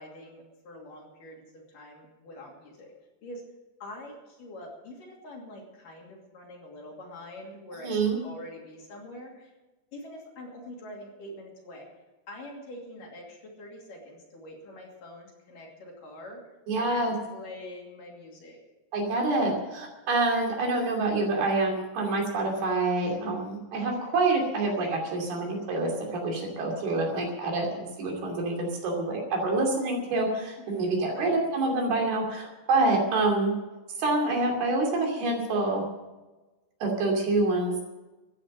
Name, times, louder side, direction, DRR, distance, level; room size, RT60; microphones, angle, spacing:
voice 1, 0.0-2.9 3.2-3.4 3.8-9.5 9.9-11.9 12.3-16.4 16.7-18.6 30.8-31.4, left 1 dB, 55° left, -1 dB, 4.0 m, -45 dB
voice 2, 7.8-8.2 16.7-17.1 18.9-33.5 34.0-35.8 36.8-37.8, right 2 dB, 65° right, 0 dB, 4.6 m, -27 dB
14.5 x 9.9 x 7.6 m, 1.1 s
omnidirectional pair, 5.0 m